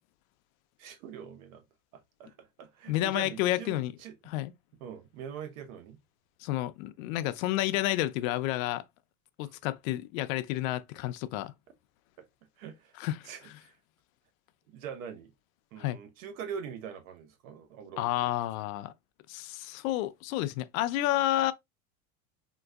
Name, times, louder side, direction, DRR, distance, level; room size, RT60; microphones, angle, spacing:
voice 1, 0.8-1.6 1.9-4.2 4.8-6.0 9.4-9.5 12.2-12.3 12.6-12.9 13.2-13.8 14.7-15.3 15.7-18.3, right 7 dB, 85° right, 0.9 m, -43 dB
voice 2, 2.9-3.9 4.3-4.5 6.4-8.8 9.4-11.5 13.0-13.3 15.8-16.0 18.0-18.9 19.3-21.5, left 15 dB, 80° left, 0.5 m, -30 dB
3.9 x 2.5 x 2.3 m
cardioid pair, 175°, 40 cm